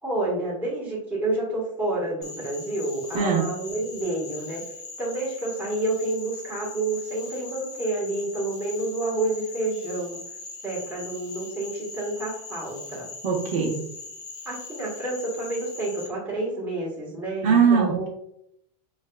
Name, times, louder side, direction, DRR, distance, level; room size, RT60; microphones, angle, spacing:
voice 1, 0.0-4.6 5.0-10.2 10.6-13.1 14.4-18.1, right 2 dB, 10° right, -7 dB, 1.3 m, -29 dB
Frog, 2.2-16.1, left 3 dB, 20° left, 0.6 m, -40 dB
voice 2, 13.2-13.8 17.4-18.1, right 6 dB, 55° right, -2 dB, 1.0 m, -21 dB
6.1 x 2.4 x 2.2 m, 0.76 s
supercardioid pair, 165°, 20 cm